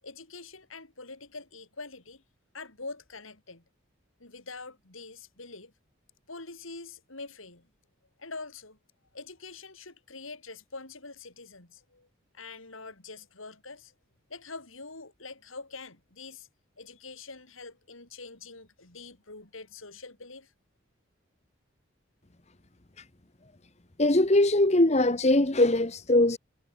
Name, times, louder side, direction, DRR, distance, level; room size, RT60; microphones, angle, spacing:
voice 1, 0.0-2.2 2.5-3.6 4.2-5.7 6.3-7.7 8.2-8.8 9.1-12.1 12.3-13.9 14.3-16.5 16.8-20.5, left 3 dB, 85° left, 5.4 m, -44 dB
voice 2, 24.0-26.4, left 1 dB, 30° left, 1.1 m, -21 dB
head